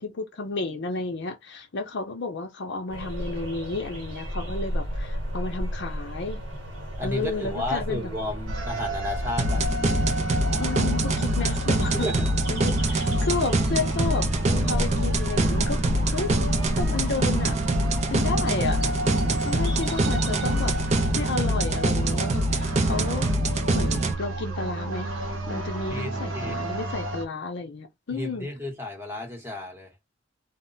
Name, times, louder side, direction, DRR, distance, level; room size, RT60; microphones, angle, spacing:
voice 1, 0.0-6.4 7.0-8.1 10.6-12.1 12.5-15.8 16.1-16.3 16.8-17.6 18.1-18.8 19.4-20.7 21.2-23.3 23.7-25.1 25.5-28.5, left 3 dB, 60° left, 0.6 m, -32 dB
sound 1, 2.9-21.1, equal, 65° right, 1.0 m, -34 dB
voice 2, 7.0-9.7 11.9-12.3 25.9-26.6 28.1-29.9, left 1 dB, 15° right, 0.9 m, -33 dB
sound 2, 8.5-27.3, right 1 dB, 85° right, 0.7 m, -33 dB
sound 3, 9.4-24.1, right 1 dB, 35° right, 0.4 m, -24 dB
2.2 x 2.1 x 3.8 m
head